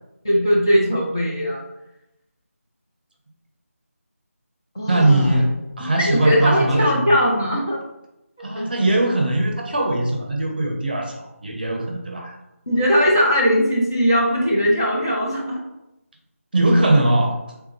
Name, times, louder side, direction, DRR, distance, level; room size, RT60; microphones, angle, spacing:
voice 1, 0.2-1.6 4.7-5.4 5.8-7.8 8.6-8.7 12.7-15.6, equal, 15° left, -5 dB, 0.4 m, -19 dB
voice 2, 4.9-5.5 5.8-7.0 8.4-12.4 16.5-17.4, right 1 dB, 40° right, 2 dB, 0.7 m, -20 dB
3.5 x 3.5 x 3.1 m, 0.91 s
figure-of-eight pair, 165°, 8 cm